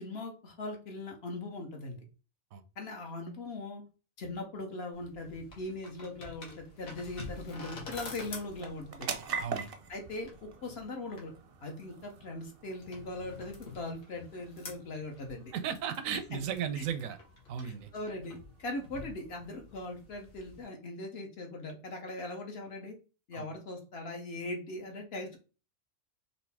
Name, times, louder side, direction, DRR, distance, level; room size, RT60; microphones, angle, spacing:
voice 1, 0.0-2.0 2.8-3.8 4.2-9.2 9.9-11.3 11.6-15.5 16.8-16.9 17.6-23.0 23.3-25.4, left 2 dB, 55° left, 3 dB, 1.0 m, -40 dB
sound 1, 4.9-20.6, left 3 dB, 90° left, 1.5 m, -49 dB
sound 2, 5.7-20.5, right 5 dB, 55° right, 0.7 m, -46 dB
voice 2, 9.4-9.7 15.5-17.2 17.5-17.9 23.3-23.5, right 8 dB, 80° right, 10 dB, 1.0 m, -35 dB
4.2 x 2.7 x 3.4 m, 0.34 s
omnidirectional pair, 1.4 m